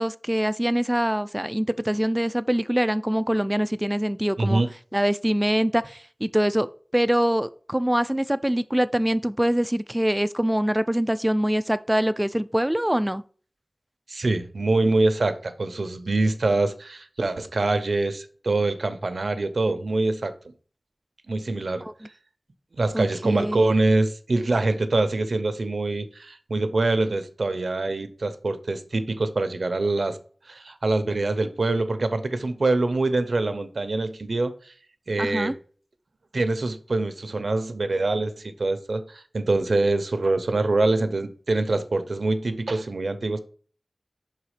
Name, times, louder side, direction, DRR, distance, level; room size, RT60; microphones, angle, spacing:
voice 1, 0.0-4.6 4.9-6.7 6.9-13.2 21.8-21.9 22.9-23.6 35.2-35.5, equal, 10° right, 0.3 m, -24 dB
voice 2, 14.1-20.3 21.3-21.9 22.7-30.2 30.5-34.7 35.1-35.5 36.3-43.4, right 2 dB, 90° right, 0.7 m, -24 dB
5.7 x 4.1 x 4.9 m
wide cardioid pair, 60°, 0 cm